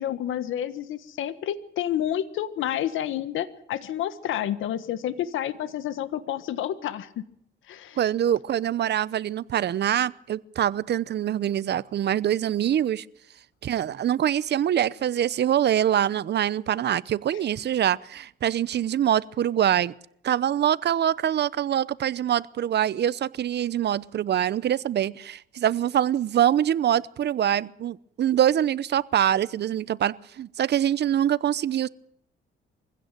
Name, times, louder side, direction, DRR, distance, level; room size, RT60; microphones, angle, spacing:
voice 1, 0.0-7.1 7.7-8.0 17.3-17.4, left 11 dB, 80° left, 1.5 m, -29 dB
voice 2, 8.0-13.0 13.6-19.9 20.2-31.9, right 10 dB, 60° right, 0.8 m, -24 dB
24.0 x 16.0 x 9.1 m
cardioid pair, 90°, 20 cm